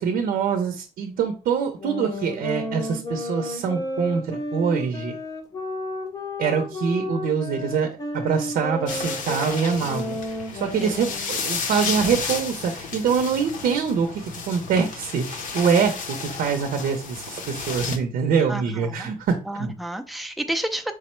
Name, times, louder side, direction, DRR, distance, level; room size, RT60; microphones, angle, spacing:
voice 1, 0.0-5.1 6.4-19.7, right 6 dB, 85° right, 0.6 m, -24 dB
sound 1, 1.8-11.5, left 1 dB, 25° left, 0.7 m, -32 dB
sound 2, 8.9-18.0, left 5 dB, 60° left, 0.7 m, -32 dB
voice 2, 11.5-11.9 18.5-19.1 19.5-20.9, right 1 dB, ahead, 0.4 m, -31 dB
4.8 x 2.1 x 4.3 m
cardioid pair, 170°, 15 cm